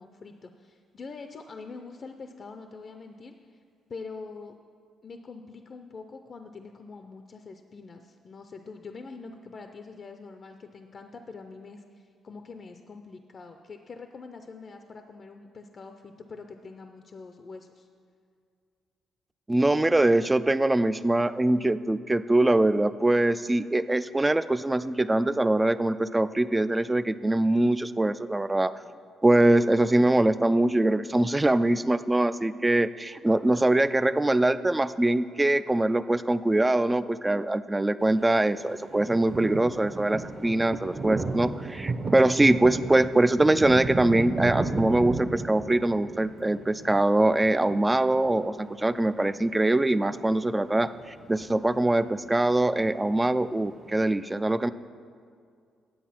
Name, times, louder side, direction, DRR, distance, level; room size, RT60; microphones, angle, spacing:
voice 1, 0.0-3.6 3.9-4.5 5.0-17.9, left 4 dB, 45° left, 6 dB, 0.6 m, -44 dB
voice 2, 19.5-28.7 29.2-54.7, right 1 dB, 15° right, 14 dB, 0.3 m, -23 dB
sound 1, 38.4-38.5 38.7-50.3 50.5-53.7, right 3 dB, 40° right, 0.9 m, -34 dB
9.4 x 7.9 x 5.8 m, 2.2 s
cardioid pair, 90°, 0 cm